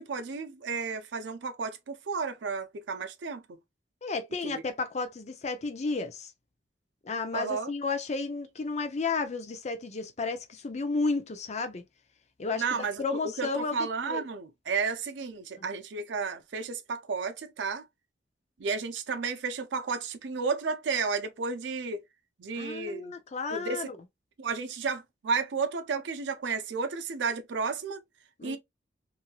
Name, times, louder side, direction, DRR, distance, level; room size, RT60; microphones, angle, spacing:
voice 1, 0.0-3.4 4.4-4.6 7.3-7.7 12.5-17.9 18.6-22.0 22.4-23.1 23.5-23.9 24.4-28.0 28.4-28.6, right 5 dB, 90° right, 0.5 m, -32 dB
voice 2, 4.0-6.3 7.0-11.8 12.4-14.2 15.6-15.7 22.6-24.0 28.4-28.6, left 4 dB, 40° left, 0.5 m, -32 dB
2.9 x 2.7 x 2.3 m
head